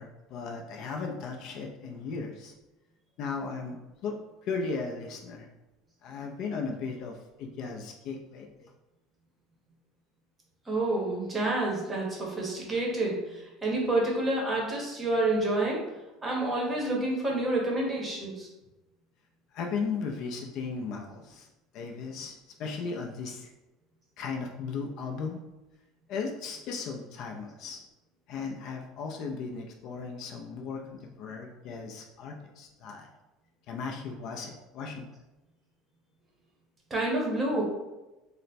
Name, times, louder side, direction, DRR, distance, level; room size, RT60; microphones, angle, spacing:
voice 1, 0.0-2.5 3.2-5.5 6.0-8.7 19.5-21.5 21.7-23.5 24.2-25.4 26.1-27.8 28.3-33.1 33.7-35.1, left 4 dB, 50° left, 2 dB, 0.4 m, -36 dB
voice 2, 10.7-15.8 16.2-18.5 36.9-37.6, right 2 dB, 15° right, -2 dB, 0.8 m, -28 dB
3.2 x 2.0 x 4.1 m, 1.0 s
cardioid pair, 165°, 0 cm